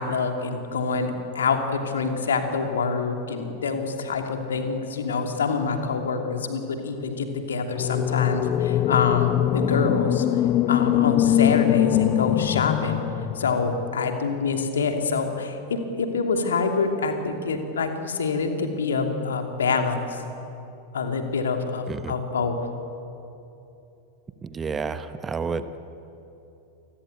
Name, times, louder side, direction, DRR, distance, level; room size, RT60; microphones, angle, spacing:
voice 1, 0.0-10.4 10.7-13.0 13.3-20.2 20.9-22.6, left 4 dB, 65° left, 5 dB, 2.7 m, -26 dB
sound 1, 7.7-13.9, left 12 dB, 35° left, 0.7 m, -22 dB
voice 2, 24.4-25.7, right 5 dB, 20° right, 12 dB, 1.1 m, -30 dB
28.0 x 20.5 x 8.2 m, 2.9 s
figure-of-eight pair, 90°, 0 cm